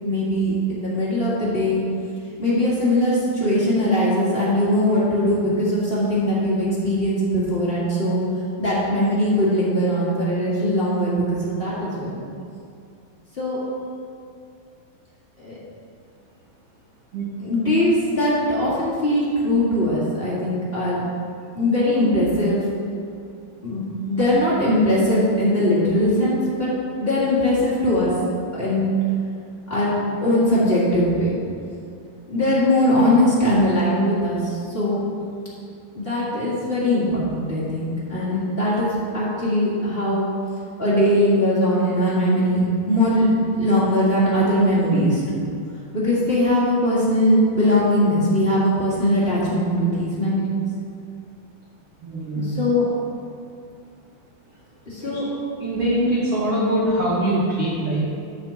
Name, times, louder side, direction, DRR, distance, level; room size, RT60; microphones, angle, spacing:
voice 1, 0.0-1.8 2.4-8.2 8.6-12.2 13.4-13.6 15.4-15.6 17.4-21.0 21.5-22.6 23.6-26.7 27.0-28.1 28.5-29.0 29.7-29.9 30.2-31.3 32.3-35.0 35.9-38.9 39.1-40.3 40.8-45.5 45.9-50.4 52.3-52.9 54.9-55.2, left 1 dB, 50° left, -9 dB, 0.7 m, -20 dB
voice 2, 52.0-52.6 55.0-55.2 55.6-58.1, right 1 dB, 75° right, -5 dB, 1.3 m, -23 dB
9.2 x 4.5 x 7.0 m, 2.4 s
omnidirectional pair, 4.3 m